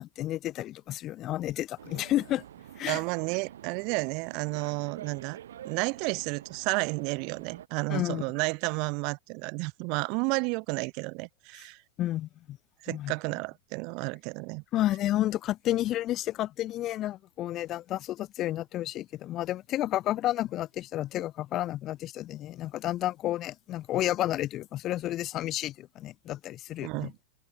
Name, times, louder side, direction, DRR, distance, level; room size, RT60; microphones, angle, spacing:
voice 1, 0.0-2.4 2.8-3.0 7.9-8.2 12.0-12.6 12.9-13.1 14.7-27.1, left 14 dB, 35° left, 1.3 m, -31 dB
sound 1, 1.8-7.7, right 11 dB, 75° right, 4.9 m, -47 dB
voice 2, 2.9-5.4 5.6-11.8 12.8-14.6 26.8-27.1, right 32 dB, 50° right, 1.1 m, -31 dB
hypercardioid pair, 110°, 0 cm